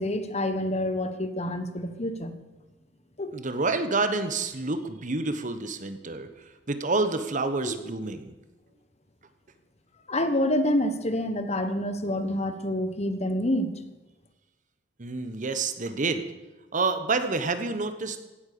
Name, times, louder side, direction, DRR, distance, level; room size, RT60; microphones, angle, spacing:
voice 1, 0.0-2.4 3.2-3.3 7.6-7.8 10.1-13.7, left 1 dB, 35° left, 9 dB, 1.2 m, -27 dB
voice 2, 3.3-8.3 15.0-16.2 16.7-18.2, right 3 dB, 45° right, 9 dB, 1.2 m, -28 dB
16.5 x 8.9 x 6.8 m, 1.1 s
head